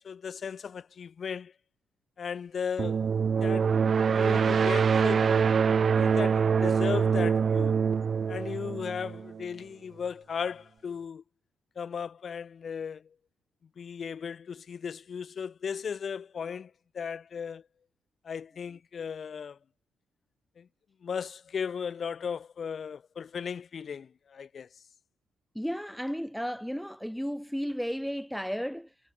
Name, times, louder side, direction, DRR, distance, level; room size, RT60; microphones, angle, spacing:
voice 1, 0.0-1.5 2.2-3.1 3.4-5.6 5.9-7.8 8.3-11.2 11.8-13.0 13.8-17.6 18.2-19.6 20.6-20.7 21.0-24.7, left 6 dB, 35° left, 1.2 m, -36 dB
sound 1, 2.8-9.4, right 6 dB, 35° right, 1.1 m, -25 dB
voice 2, 25.6-28.9, equal, ahead, 1.9 m, -33 dB
cardioid pair, 145°, 0 cm